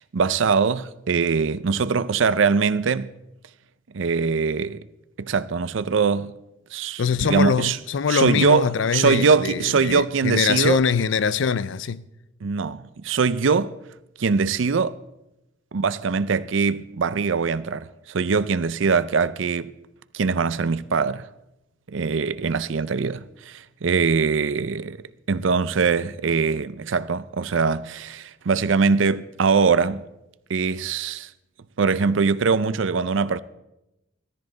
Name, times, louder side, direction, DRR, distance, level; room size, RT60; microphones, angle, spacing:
voice 1, 0.1-3.1 3.9-4.8 5.2-6.4 6.7-7.8 8.1-10.8 12.4-13.7 14.2-15.0 15.7-19.7 20.1-21.3 21.9-30.0 30.5-31.3 31.8-33.4, right 5 dB, 80° right, 0.5 m, -22 dB
voice 2, 7.0-12.0, left 6 dB, 75° left, 0.4 m, -23 dB
15.5 x 13.5 x 3.9 m
head